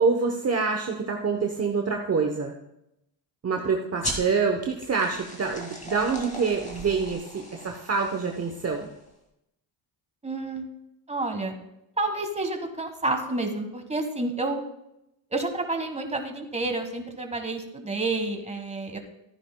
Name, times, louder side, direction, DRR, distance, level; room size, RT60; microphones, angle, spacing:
voice 1, 0.0-2.5 3.4-8.9, right 5 dB, 35° right, 2 dB, 0.9 m, -26 dB
sound 1, 4.0-9.1, left 1 dB, 15° left, 2.2 m, -38 dB
voice 2, 10.2-10.6 11.1-11.5 12.0-14.6 15.3-19.0, right 2 dB, 15° right, 5 dB, 1.4 m, -29 dB
14.0 x 9.9 x 2.2 m, 0.85 s
cardioid pair, 95°, 46 cm